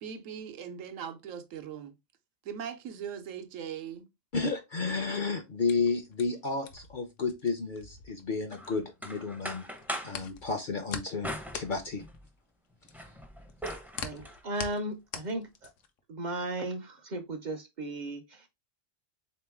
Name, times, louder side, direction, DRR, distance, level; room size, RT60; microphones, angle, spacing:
voice 1, 0.0-1.9 2.4-4.1, right 8 dB, 80° right, 1.0 m, -40 dB
voice 2, 4.3-9.7 10.0-12.0 13.7-13.8, left 4 dB, 55° left, 0.6 m, -32 dB
sound 1, 4.9-9.1 9.4-16.0, left 6 dB, 75° left, 1.0 m, -43 dB
sound 2, 8.5-10.2 11.2-12.3 12.7-14.4, equal, 5° right, 0.4 m, -40 dB
voice 3, 14.0-15.7 16.1-18.5, right 2 dB, 50° right, 0.5 m, -36 dB
3.7 x 3.0 x 3.4 m
omnidirectional pair, 1.3 m